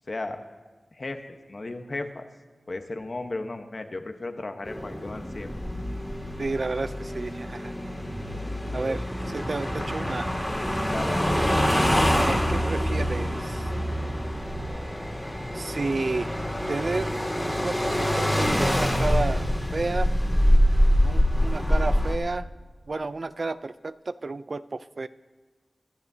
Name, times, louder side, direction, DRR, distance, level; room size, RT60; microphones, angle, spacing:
voice 1, 0.1-0.4 0.9-2.2 2.7-5.5 8.8-9.0 10.9-11.5, left 2 dB, 50° left, 6 dB, 1.1 m, -35 dB
sound 1, 4.6-22.2, equal, 10° left, 2.3 m, -25 dB
voice 2, 6.4-7.7 8.7-10.3 12.0-13.7 15.5-16.3 16.7-17.1 17.4-19.4 19.7-20.1 21.0-22.5 22.9-25.1, right 3 dB, 55° right, 14 dB, 0.4 m, -31 dB
24.0 x 11.5 x 2.8 m, 1.4 s
wide cardioid pair, 75°, 0 cm